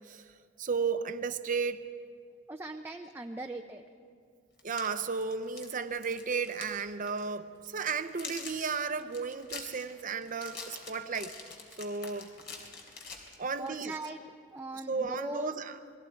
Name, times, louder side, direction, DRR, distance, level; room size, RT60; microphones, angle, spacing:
voice 1, 0.6-1.8 4.6-11.3 11.8-12.3 13.4-13.9 14.9-15.8, right 5 dB, 45° right, 10 dB, 0.8 m, -34 dB
voice 2, 2.5-3.8 13.6-14.2 14.5-15.5, right 2 dB, 15° right, 4 dB, 0.6 m, -39 dB
sound 1, 4.6-6.8 7.1-7.2 7.6-13.7, left 4 dB, 65° left, 3.6 m, -45 dB
29.0 x 20.5 x 4.6 m, 2.2 s
head